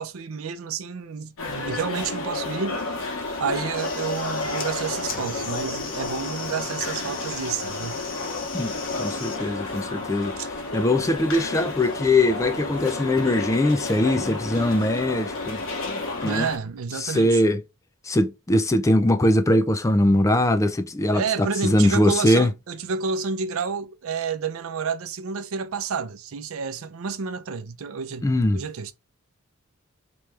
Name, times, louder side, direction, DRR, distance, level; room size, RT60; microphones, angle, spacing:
voice 1, 0.0-2.9 3.4-7.9 10.0-10.1 10.4-10.5 16.2-17.4 21.1-28.3 28.5-28.9, right 5 dB, 80° right, 0.5 m, -30 dB
sound 1, 1.4-16.6, left 3 dB, 85° left, 1.1 m, -31 dB
sound 2, 3.7-9.4, left 5 dB, 40° left, 0.9 m, -38 dB
voice 2, 9.0-15.6 16.2-16.5 16.9-17.6 18.0-21.2 21.6-22.5 28.2-28.6, left 1 dB, 15° left, 0.4 m, -21 dB
3.3 x 3.0 x 3.3 m
head